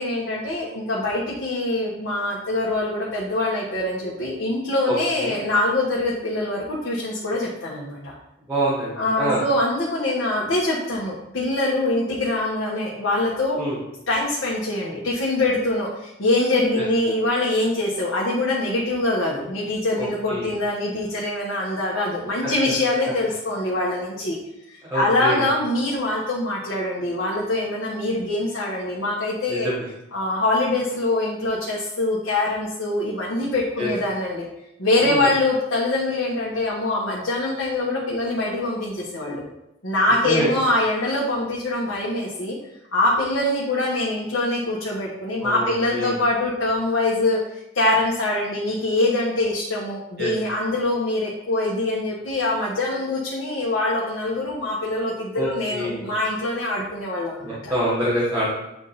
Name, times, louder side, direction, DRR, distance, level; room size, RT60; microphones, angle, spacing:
voice 1, 0.0-8.1 9.0-13.6 14.1-24.4 24.7-29.7 30.1-34.5 34.8-39.4 39.8-42.6 42.9-47.4 47.7-57.7, left 2 dB, 70° left, -5 dB, 1.2 m, -24 dB
voice 2, 4.8-5.4 8.5-9.4 13.6-13.8 16.8-16.9 20.0-20.5 22.4-22.5 24.9-25.4 29.5-29.9 33.8-33.9 35.0-35.3 40.2-40.5 45.4-46.1 50.2-50.3 55.3-56.1 57.4-58.5, right 1 dB, 10° right, -10 dB, 1.4 m, -26 dB
8.1 x 3.6 x 4.1 m, 0.86 s
head